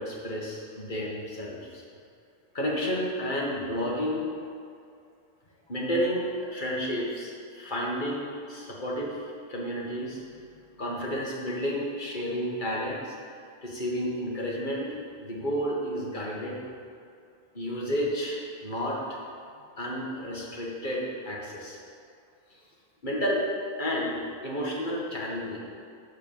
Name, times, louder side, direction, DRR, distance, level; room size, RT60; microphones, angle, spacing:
voice 1, 0.0-1.8 2.5-4.2 5.7-10.2 10.8-13.1 13.6-16.6 17.5-19.2 19.8-21.8 23.0-23.5 23.8-25.6, equal, 50° left, -4 dB, 2.1 m, -31 dB
12.0 x 5.0 x 7.4 m, 2.4 s
omnidirectional pair, 1.1 m